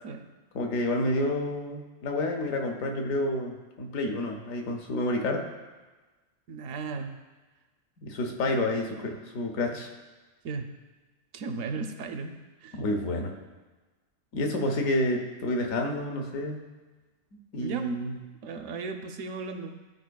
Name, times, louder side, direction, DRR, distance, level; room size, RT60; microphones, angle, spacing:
voice 1, 0.5-5.4 8.0-9.9 12.7-13.3 14.3-16.6 17.5-18.2, left 1 dB, 75° left, 2 dB, 1.2 m, -29 dB
voice 2, 6.5-7.2 9.7-9.8 10.4-10.7 11.3-12.3 12.6-12.8 17.6-18.0 18.4-19.7, right 4 dB, 75° right, 6 dB, 1.0 m, -35 dB
11.5 x 4.4 x 2.3 m, 1.3 s
omnidirectional pair, 1.4 m